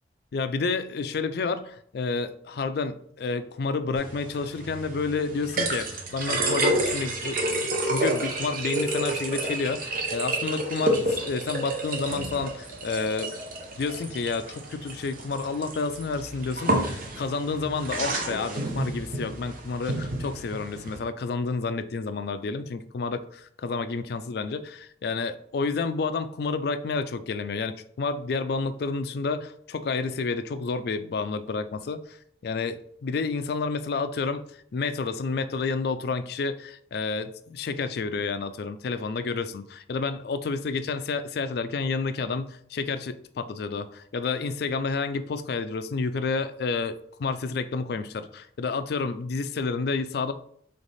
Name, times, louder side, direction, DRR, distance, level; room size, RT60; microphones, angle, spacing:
voice 1, 0.3-13.3 13.8-23.2 23.6-32.0 32.4-34.4 34.7-50.3, left 4 dB, 60° left, 10 dB, 0.4 m, -30 dB
sound 1, 4.0-21.0, right 1 dB, 50° right, 0.8 m, -30 dB
3.5 x 3.3 x 4.0 m, 0.65 s
head